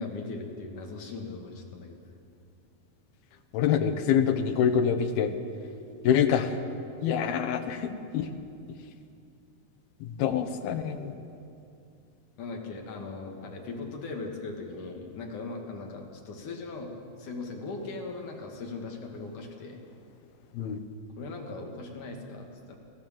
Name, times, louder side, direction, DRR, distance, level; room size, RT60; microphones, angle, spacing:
voice 1, 0.0-2.0 12.4-19.8 21.2-22.8, left 3 dB, 60° left, 1 dB, 3.5 m, -39 dB
voice 2, 3.5-5.3 6.0-6.5 7.0-8.3 10.0-11.1 20.5-20.8, left 8 dB, 90° left, 8 dB, 3.1 m, -26 dB
29.5 x 14.5 x 7.6 m, 2.5 s
omnidirectional pair, 4.2 m